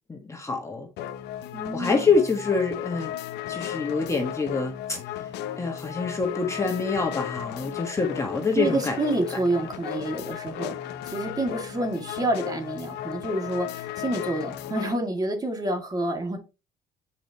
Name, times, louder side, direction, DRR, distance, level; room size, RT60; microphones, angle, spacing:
voice 1, 0.1-0.9 1.7-3.1 3.5-5.3 5.5-9.0 9.3-9.4, left 4 dB, 15° left, 1.4 m, -26 dB
sound 1, 1.0-15.0, left 11 dB, 80° left, 0.8 m, -35 dB
voice 2, 1.5-2.2 8.6-10.8 11.1-16.4, right 2 dB, 20° right, 2.1 m, -28 dB
8.6 x 4.9 x 2.9 m
cardioid pair, 110°, 17 cm